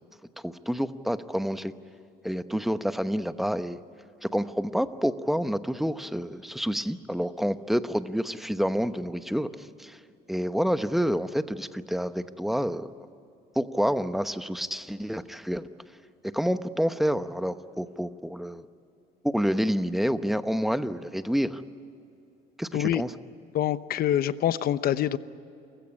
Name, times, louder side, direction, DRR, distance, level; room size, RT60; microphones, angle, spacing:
voice 1, 0.4-1.7 2.2-3.8 4.2-10.0 10.3-12.9 13.5-15.6 16.3-18.6 19.2-21.6 22.6-23.1, equal, ahead, 11 dB, 1.0 m, -28 dB
voice 2, 23.5-25.2, left 11 dB, 60° left, 14 dB, 0.9 m, -25 dB
29.0 x 16.0 x 9.9 m, 2.7 s
cardioid pair, 110°, 17 cm